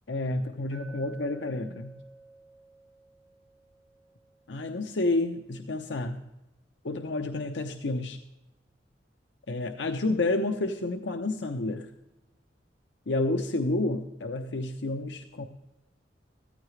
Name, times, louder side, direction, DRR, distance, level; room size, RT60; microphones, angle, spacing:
voice 1, 0.1-1.9 4.5-6.2 6.8-8.2 9.5-11.9 13.1-15.5, left 2 dB, 85° left, 6 dB, 0.8 m, -30 dB
Glass, 0.7-4.8, right 3 dB, 20° right, 1.7 m, -51 dB
15.0 x 14.0 x 3.2 m, 0.98 s
head